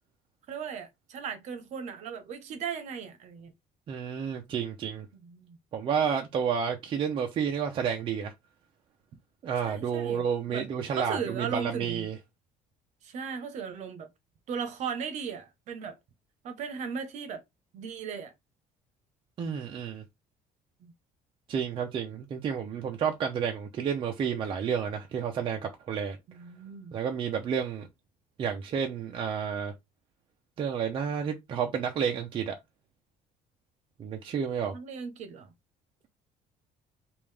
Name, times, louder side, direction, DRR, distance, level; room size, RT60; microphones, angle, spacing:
voice 1, 0.5-3.5 5.1-5.6 9.7-10.7 11.0-12.0 13.0-14.1 14.5-16.0 16.4-17.4 17.7-18.3 20.8-20.9 26.3-26.9 34.7-35.5, right 6 dB, 50° right, 1.0 m, -37 dB
voice 2, 3.9-5.1 5.7-8.3 9.4-12.2 19.4-20.0 21.5-26.2 26.9-27.9 28.4-29.7 30.6-32.6 34.0-34.7, right 7 dB, 35° right, 0.7 m, -30 dB
5.3 x 2.6 x 3.4 m
cardioid pair, 175°, 15 cm